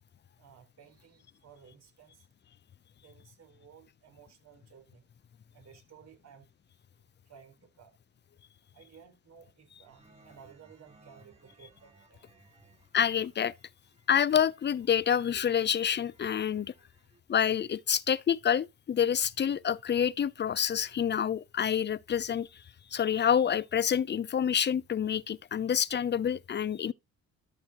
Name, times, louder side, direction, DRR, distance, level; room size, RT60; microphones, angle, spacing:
voice 1, 0.4-2.3 3.0-5.0 5.5-6.5 7.3-7.9 8.7-12.2, right 7 dB, 60° right, 4.7 m, -56 dB
sound 1, 9.8-17.2, right 3 dB, 20° right, 6.4 m, -63 dB
voice 2, 12.9-13.5 14.1-16.7 17.3-22.6 22.9-26.9, left 8 dB, 35° left, 0.6 m, -27 dB
13.0 x 6.0 x 2.9 m
cardioid pair, 90°, 30 cm